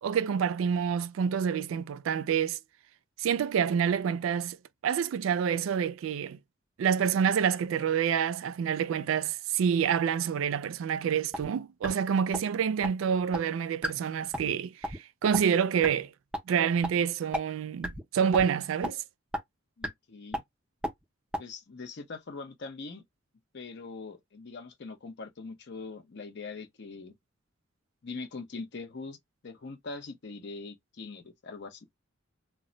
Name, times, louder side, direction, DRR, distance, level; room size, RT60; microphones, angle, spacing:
voice 1, 0.0-2.6 3.2-4.6 4.8-6.4 6.8-16.1 16.5-19.0, right 7 dB, 80° right, 0.3 m, -27 dB
sound 1, 11.3-11.5 11.8-11.9 12.3-12.4 12.8-12.9 13.3-13.4 13.8-13.9 14.3-14.5 14.8-15.0 15.3-15.4 15.8-15.9 16.3-16.4 16.8-16.9 17.3-17.4 17.8-18.0 18.3-18.4 18.8-18.9 19.3-19.4 19.8-19.9 20.3-20.4 20.8-20.9 21.3-21.4, equal, 5° right, 0.5 m, -31 dB
voice 2, 19.8-20.4 21.4-23.0 23.5-27.1 28.0-29.2 29.4-31.9, left 3 dB, 60° left, 0.6 m, -42 dB
2.1 x 2.1 x 3.7 m
head